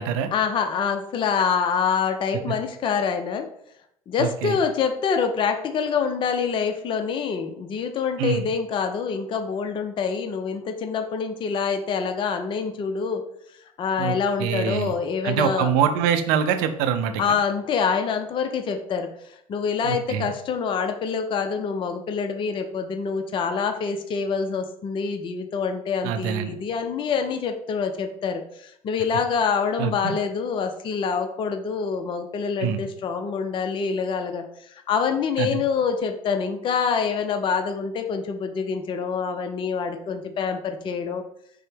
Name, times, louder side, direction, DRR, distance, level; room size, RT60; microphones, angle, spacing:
voice 1, 0.3-3.5 4.1-13.2 13.8-15.7 17.2-41.2, left 6 dB, 30° left, 6 dB, 0.4 m, -26 dB
voice 2, 4.2-4.6 8.2-8.5 14.0-14.9 15.2-17.2 19.8-20.3 26.0-26.5 29.8-30.1 32.6-32.8 35.4-35.6, right 8 dB, 60° right, 8 dB, 0.5 m, -24 dB
5.2 x 2.0 x 3.5 m, 0.74 s
figure-of-eight pair, 65°, 18 cm